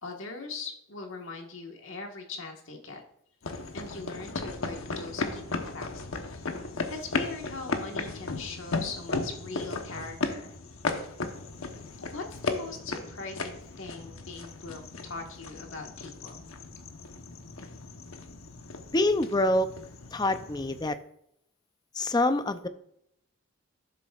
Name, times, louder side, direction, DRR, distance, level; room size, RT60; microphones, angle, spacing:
voice 1, 0.0-3.0 3.7-6.5 6.9-10.5 12.0-16.4, left 3 dB, 70° left, 2 dB, 1.5 m, -41 dB
sound 1, 3.4-20.9, left 3 dB, 85° left, 1.0 m, -36 dB
voice 2, 18.9-19.7 20.1-21.0 21.9-22.7, left 1 dB, 20° left, 11 dB, 0.5 m, -25 dB
12.0 x 7.1 x 2.4 m, 0.74 s
head